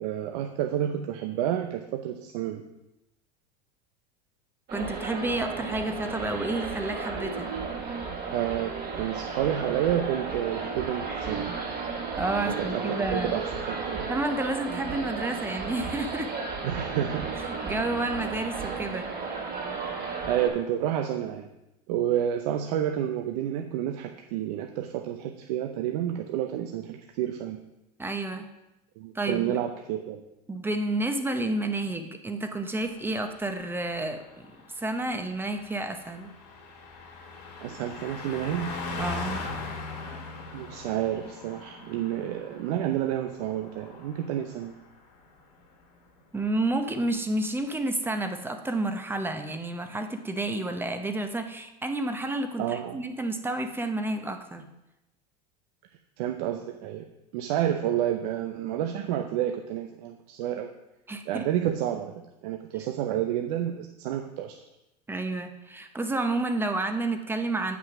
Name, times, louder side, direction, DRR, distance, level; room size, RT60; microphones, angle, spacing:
voice 1, 0.0-2.6 8.3-11.6 12.5-14.1 16.6-17.3 20.3-21.5 21.9-27.6 29.0-30.2 37.6-38.7 40.5-44.8 52.6-53.0 56.2-57.0 57.3-60.7 61.3-64.6, right 11 dB, 70° right, 5 dB, 0.7 m, -30 dB
voice 2, 4.7-7.5 12.1-13.4 14.1-16.3 17.5-19.1 28.0-28.5 29.1-29.6 30.5-34.5 34.7-36.3 39.0-39.5 46.3-54.7 61.1-61.5 65.1-67.8, right 2 dB, 10° right, 7 dB, 0.7 m, -30 dB
sound 1, 4.7-20.5, right 4 dB, 45° right, 2.6 m, -34 dB
Car passing by, 32.9-44.8 45.1-45.4, left 3 dB, 75° left, 2.5 m, -41 dB
7.5 x 6.0 x 5.9 m, 0.92 s
supercardioid pair, 120°, 21 cm